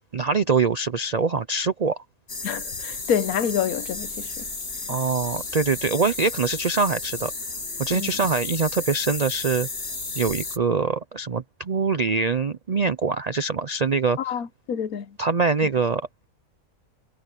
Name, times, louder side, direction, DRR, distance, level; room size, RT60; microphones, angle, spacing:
voice 1, 0.1-2.0 4.9-7.3 7.8-9.7 10.1-14.4 15.2-16.1, right 4 dB, 60° right, 0.4 m, -24 dB
sound 1, 2.3-10.6, left 3 dB, 45° left, 2.6 m, -33 dB
voice 2, 2.4-4.5 7.9-8.2 14.2-15.2, left 8 dB, 75° left, 1.3 m, -27 dB
omnidirectional pair, 1.6 m